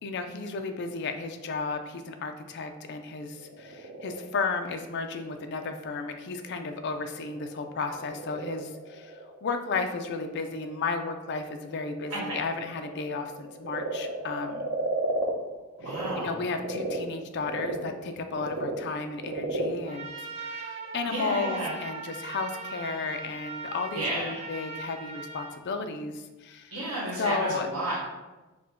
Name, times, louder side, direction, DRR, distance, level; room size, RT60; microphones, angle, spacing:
voice 1, 0.0-14.7 16.2-26.7 27.2-27.7, left 4 dB, 50° left, 6 dB, 0.4 m, -33 dB
Frog, 3.3-16.1 16.5-21.1, right 1 dB, 90° right, 0.8 m, -36 dB
voice 2, 12.1-12.4 15.8-16.4 21.1-21.7 23.9-24.4 26.7-28.0, right 1 dB, 70° right, -8 dB, 1.2 m, -32 dB
Trumpet, 19.9-25.6, right 4 dB, 30° right, 0.5 m, -40 dB
4.8 x 2.1 x 3.7 m, 1.1 s
head